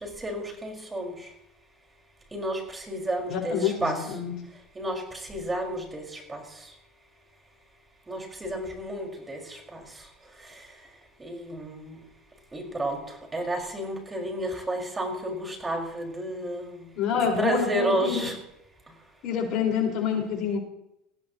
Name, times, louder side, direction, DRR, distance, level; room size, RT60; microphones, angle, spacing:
voice 1, 0.2-1.1 2.3-2.6 2.9-3.5 3.8-4.0 4.7-5.0 5.3-6.0 6.3-6.4 8.1-9.4 11.2-11.9 12.5-13.0 13.3-16.8 17.4-18.3, right 1 dB, 20° right, 2 dB, 5.1 m, -30 dB
voice 2, 3.3-4.3 16.9-18.3 19.2-20.6, left 7 dB, 55° left, 1 dB, 4.7 m, -27 dB
21.0 x 15.5 x 3.0 m, 0.81 s
hypercardioid pair, 85°, 0 cm